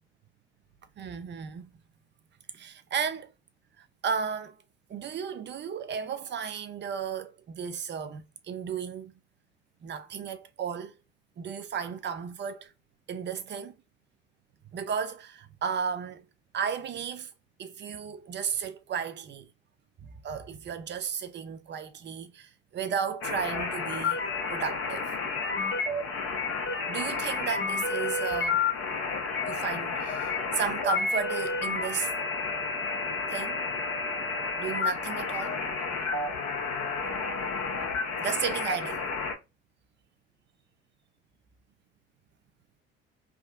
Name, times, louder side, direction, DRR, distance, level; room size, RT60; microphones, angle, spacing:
voice 1, 1.0-1.7 2.5-3.3 3.8-4.6 4.9-9.2 9.8-10.9 11.4-12.7 13.1-13.7 14.7-16.2 16.5-17.3 17.6-19.5 20.2-24.2 24.5-25.1 26.9-28.6 29.5-32.1 33.3-33.6 34.6-35.6 38.2-39.1, right 7 dB, 40° right, 0.6 m, -34 dB
sound 1, 23.2-39.3, left 4 dB, 45° left, 1.0 m, -31 dB
3.5 x 2.1 x 2.4 m
hypercardioid pair, 55°, 29 cm